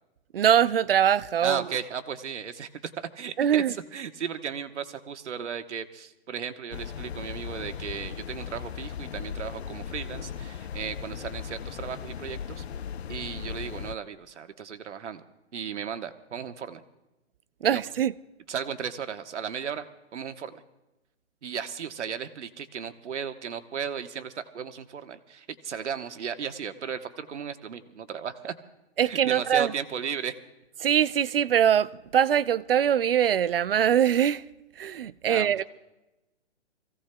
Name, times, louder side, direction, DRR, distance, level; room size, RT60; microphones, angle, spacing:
voice 1, 0.3-1.6 3.4-3.7 17.6-18.1 29.0-29.7 30.8-34.4 34.8-35.6, right 9 dB, 55° right, 0.4 m, -23 dB
voice 2, 1.4-12.6 13.1-15.2 15.5-16.8 17.7-17.8 18.5-19.9 20.1-20.6 21.4-28.5 29.0-30.4 35.3-35.6, right 7 dB, 80° right, 1.2 m, -35 dB
sound 1, 6.7-14.0, left 8 dB, 65° left, 0.5 m, -37 dB
27.5 x 16.5 x 2.2 m
hypercardioid pair, 175°, 35 cm